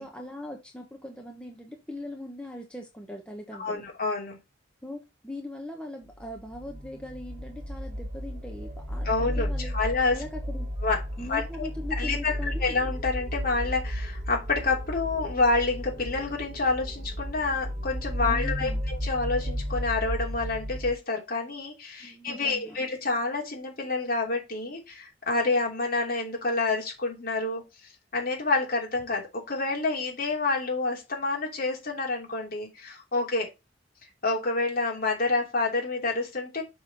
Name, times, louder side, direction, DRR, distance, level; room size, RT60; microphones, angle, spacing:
voice 1, 0.0-3.8 4.8-9.8 10.1-10.7 11.2-12.8 18.2-18.8 22.0-22.8, left 1 dB, 5° left, 1 dB, 1.1 m, -40 dB
voice 2, 3.6-4.4 9.0-10.2 10.8-11.7 12.0-27.6 28.1-33.5 34.2-36.6, left 3 dB, 50° left, -1 dB, 3.0 m, -28 dB
sound 1, 6.1-20.9, equal, 50° right, 1.7 m, -33 dB
6.1 x 5.8 x 4.0 m, 0.24 s
head